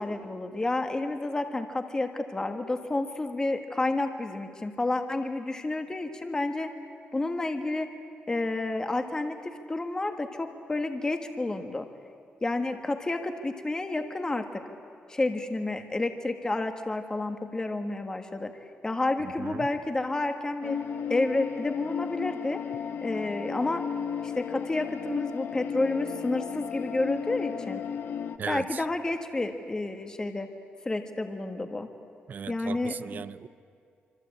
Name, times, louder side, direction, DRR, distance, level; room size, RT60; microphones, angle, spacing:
voice 1, 0.0-6.7 7.1-7.9 8.3-11.9 12.4-14.6 15.1-18.5 18.8-20.8 21.1-22.6 23.0-23.8 24.2-27.8 28.5-30.5 30.8-31.9 32.5-33.2, left 2 dB, 20° left, 6 dB, 1.5 m, -30 dB
voice 2, 19.2-19.7 28.4-28.9 32.3-33.5, right 7 dB, 50° right, 17 dB, 0.6 m, -37 dB
sound 1, 20.6-28.4, left 7 dB, 75° left, 1.1 m, -34 dB
26.0 x 25.5 x 8.6 m, 2.4 s
wide cardioid pair, 150°, 4 cm